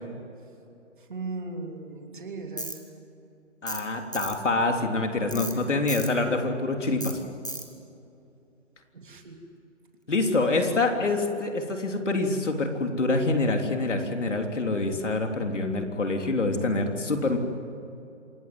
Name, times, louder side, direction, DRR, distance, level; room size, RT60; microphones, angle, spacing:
voice 1, 1.0-2.8 5.2-5.8 8.9-9.4, right 3 dB, 40° right, 3 dB, 3.1 m, -38 dB
Tools, 2.6-2.8 3.7-3.9 4.1-4.4 5.3-5.5 5.9-6.1 7.0-7.1 7.4-7.7, right 1 dB, 15° left, 0.8 m, -34 dB
voice 2, 3.6-7.2 10.1-17.4, left 2 dB, 70° left, 4 dB, 3.5 m, -26 dB
27.5 x 19.0 x 7.7 m, 2.7 s
hypercardioid pair, 180°, 38 cm